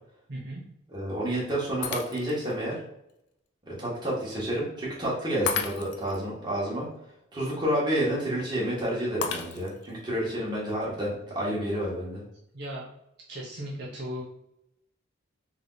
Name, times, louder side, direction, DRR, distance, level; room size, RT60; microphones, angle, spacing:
voice 1, 0.3-0.6 12.5-12.9 13.3-14.2, equal, 55° right, -5 dB, 0.9 m, -36 dB
voice 2, 0.9-2.8 3.7-6.9 7.3-12.2, right 1 dB, 20° right, -6 dB, 1.5 m, -29 dB
Shatter, 1.8-2.5 3.1-3.2 5.5-6.2 9.2-9.9, left 6 dB, 55° left, 0.5 m, -33 dB
3.6 x 3.3 x 4.0 m, 0.81 s
head